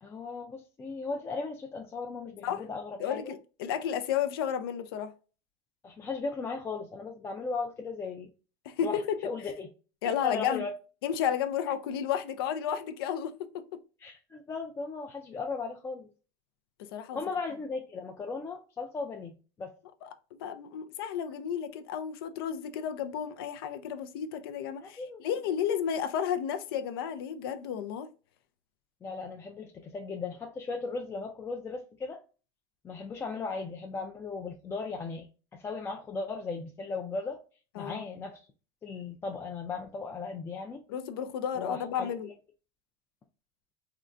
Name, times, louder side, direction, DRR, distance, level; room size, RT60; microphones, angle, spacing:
voice 1, 0.0-3.3 5.8-8.3 8.8-9.7 10.2-10.7 14.0-16.1 17.1-19.7 24.8-25.2 29.0-32.2 32.8-35.3 35.5-37.4 37.8-38.5 38.8-40.8 41.5-42.1, left 4 dB, 20° left, 0.4 m, -37 dB
voice 2, 3.0-5.1 8.7-9.2 10.0-10.6 11.0-13.8 16.8-17.2 20.0-20.1 20.4-28.1 37.8-38.0 40.9-42.3, left 8 dB, 90° left, 0.4 m, -32 dB
3.6 x 2.2 x 2.5 m
supercardioid pair, 120°, 12 cm